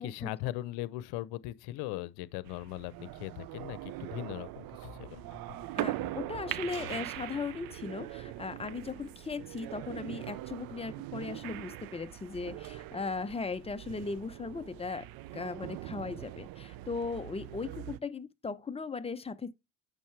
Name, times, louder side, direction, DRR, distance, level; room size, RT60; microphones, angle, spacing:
voice 1, 0.0-4.7 4.9-5.2, left 16 dB, 80° left, 0.7 m, -39 dB
sound 1, 2.2-2.7 4.8-7.5, left 12 dB, 65° left, 1.0 m, -54 dB
sound 2, 2.4-18.0, right 16 dB, 65° right, 0.6 m, -42 dB
sound 3, 3.8-9.9, right 5 dB, 85° right, 2.9 m, -64 dB
voice 2, 5.7-15.1 15.3-19.5, left 4 dB, 15° left, 0.7 m, -38 dB
9.0 x 6.5 x 3.3 m
cardioid pair, 95°, 38 cm